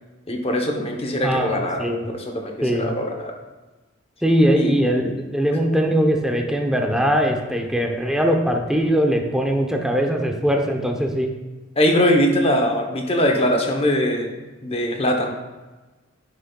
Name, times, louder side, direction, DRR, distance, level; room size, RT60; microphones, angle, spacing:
voice 1, 0.3-3.3 4.6-4.8 11.8-14.3 14.6-15.4, equal, 30° left, 3 dB, 0.8 m, -21 dB
voice 2, 1.2-2.0 2.6-2.9 4.2-11.3, equal, 5° right, 2 dB, 0.7 m, -21 dB
9.5 x 6.8 x 2.3 m, 1.2 s
head